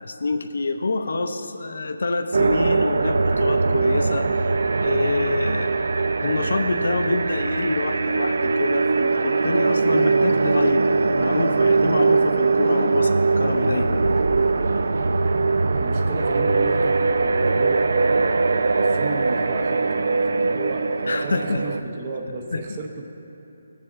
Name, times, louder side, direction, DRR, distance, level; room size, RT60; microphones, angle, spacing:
voice 1, 0.0-4.5 4.8-5.8 6.2-14.1 21.1-21.6 22.5-22.6, left 3 dB, 65° left, 6 dB, 0.5 m, -26 dB
sound 1, 2.3-21.8, right 3 dB, 65° right, 0.3 m, -21 dB
voice 2, 15.7-23.0, right 3 dB, 20° right, 2 dB, 0.6 m, -33 dB
19.0 x 7.3 x 2.4 m, 2.9 s
hypercardioid pair, 180°, 0 cm